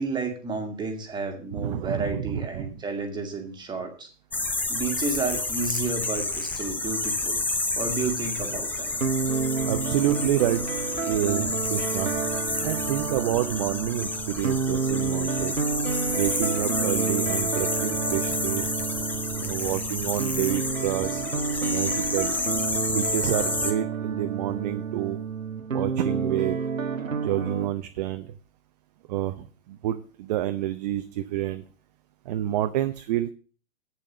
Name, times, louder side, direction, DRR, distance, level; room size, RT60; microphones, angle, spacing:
voice 1, 0.0-4.1 4.7-7.4 7.8-8.9, right 4 dB, 10° right, 5 dB, 1.8 m, -31 dB
voice 2, 1.6-2.7 9.3-10.6 11.0-12.1 12.6-15.6 16.1-18.7 19.4-22.3 22.9-25.2 25.7-26.6 27.2-28.3 29.1-31.6 32.3-33.3, right 13 dB, 30° right, 9 dB, 0.6 m, -29 dB
sound 1, 4.3-23.7, left 2 dB, 5° left, 0.7 m, -30 dB
sound 2, 8.8-27.7, right 6 dB, 85° right, 0.9 m, -30 dB
8.6 x 6.8 x 7.5 m, 0.39 s
figure-of-eight pair, 115°, 39 cm